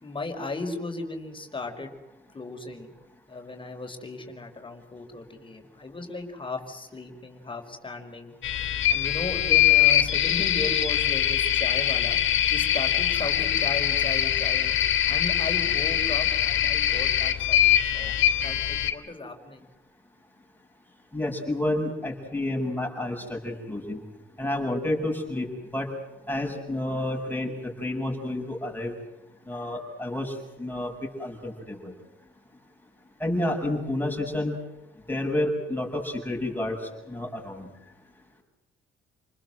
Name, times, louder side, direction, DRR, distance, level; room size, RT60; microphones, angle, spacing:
voice 1, 0.0-1.9 2.3-2.9 3.3-8.3 8.9-12.2 12.5-14.7 15.0-18.1 18.4-19.7, left 2 dB, 25° left, 4 dB, 5.1 m, -36 dB
sound 1, 8.4-18.9, left 11 dB, 80° left, 2.9 m, -23 dB
voice 2, 21.1-24.0 24.4-25.9 26.3-28.9 29.5-31.9 33.2-34.6 35.1-37.7, left 1 dB, 10° left, 0 dB, 7.8 m, -30 dB
30.0 x 20.5 x 7.9 m, 1.0 s
cardioid pair, 90°, 20 cm